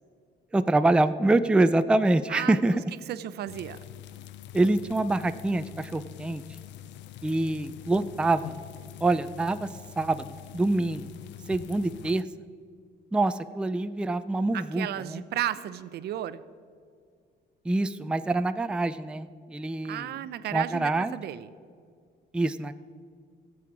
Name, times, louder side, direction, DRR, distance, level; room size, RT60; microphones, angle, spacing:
voice 1, 0.5-2.8 4.5-6.4 7.2-8.6 9.0-9.7 10.0-10.3 10.5-11.1 11.5-12.2 13.1-15.2 17.6-20.2 20.5-21.2 22.3-22.7, right 2 dB, 5° right, 10 dB, 0.4 m, -25 dB
voice 2, 2.3-2.6 3.1-3.8 14.5-16.4 19.8-21.5, right 12 dB, 65° right, 14 dB, 0.6 m, -33 dB
sound 1, 3.5-12.2, left 12 dB, 80° left, 0.5 m, -45 dB
19.0 x 7.7 x 4.7 m, 2.1 s
cardioid pair, 130°, 18 cm